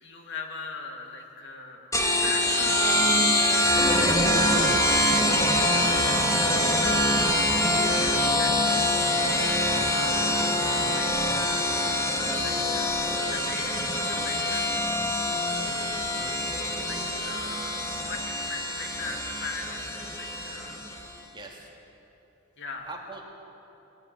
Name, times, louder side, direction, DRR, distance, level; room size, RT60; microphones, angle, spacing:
voice 1, 0.0-3.1 3.9-5.0 5.5-7.4 7.9-14.7 15.3-16.3 16.6-20.8 22.6-22.9, left 4 dB, 55° left, 2 dB, 2.6 m, -41 dB
sound 1, 1.9-21.1, left 1 dB, 15° left, 1.9 m, -25 dB
Wind instrument woodwind instrument, 2.0-12.0, right 5 dB, 75° right, 2.0 m, -37 dB
voice 2, 21.3-21.7 22.9-23.2, right 3 dB, 20° right, -1 dB, 3.1 m, -43 dB
23.0 x 17.0 x 9.8 m, 3.0 s
head